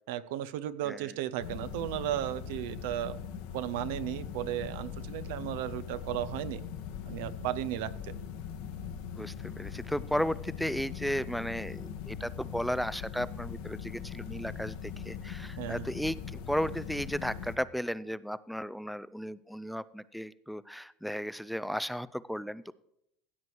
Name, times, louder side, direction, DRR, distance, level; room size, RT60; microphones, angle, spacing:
voice 1, 0.1-3.2 3.5-6.6 7.1-8.1 15.6-15.9, right 13 dB, 85° right, 14 dB, 0.6 m, -35 dB
sound 1, 1.4-17.6, left 7 dB, 80° left, 1.4 m, -41 dB
voice 2, 9.2-16.2 16.5-22.7, equal, ahead, 17 dB, 0.3 m, -34 dB
15.5 x 7.8 x 4.7 m, 0.77 s
supercardioid pair, 125°, 0 cm